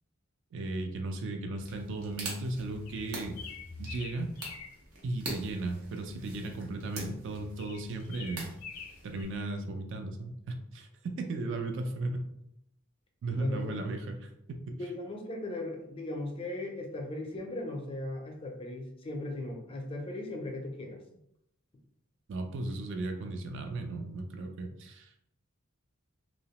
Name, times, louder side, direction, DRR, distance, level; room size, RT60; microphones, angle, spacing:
voice 1, 0.5-3.4 3.8-4.3 5.0-8.5 9.0-10.9 11.2-12.2 13.2-14.6 22.3-25.2, right 2 dB, 60° right, 5 dB, 0.3 m, -36 dB
sound 1, 1.6-9.4, right 1 dB, 85° right, 0.8 m, -44 dB
sound 2, 2.9-4.8 7.6-9.2, left 6 dB, 85° left, 0.4 m, -45 dB
voice 2, 13.3-13.8 14.8-21.0, left 1 dB, 25° left, 2 dB, 0.4 m, -37 dB
2.7 x 2.0 x 2.9 m, 0.80 s
head